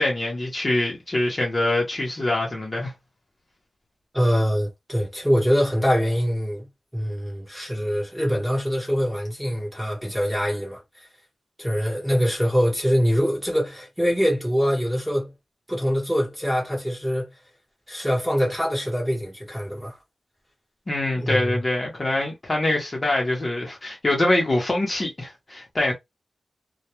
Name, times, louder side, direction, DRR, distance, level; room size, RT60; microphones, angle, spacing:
voice 1, 0.0-2.9 20.9-25.9, left 1 dB, 30° left, 0.8 m, -24 dB
voice 2, 4.1-6.7 6.9-11.1 11.6-15.3 15.7-17.3 17.9-20.0 21.1-21.6, equal, 5° right, 1.1 m, -24 dB
2.2 x 2.2 x 2.9 m
wide cardioid pair, 160°, 0 cm